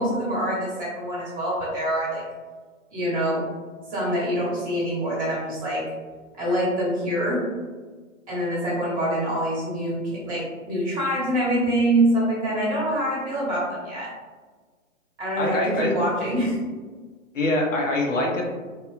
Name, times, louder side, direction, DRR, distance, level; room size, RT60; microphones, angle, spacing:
voice 1, 0.0-2.2 2.9-3.4 3.9-5.8 6.4-7.4 8.3-14.1 15.2-16.6, right 1 dB, 20° right, -6 dB, 1.1 m, -25 dB
voice 2, 15.4-15.9 17.3-18.4, left 1 dB, 70° left, -1 dB, 0.9 m, -24 dB
3.6 x 2.2 x 2.5 m, 1.4 s
figure-of-eight pair, 125°, 39 cm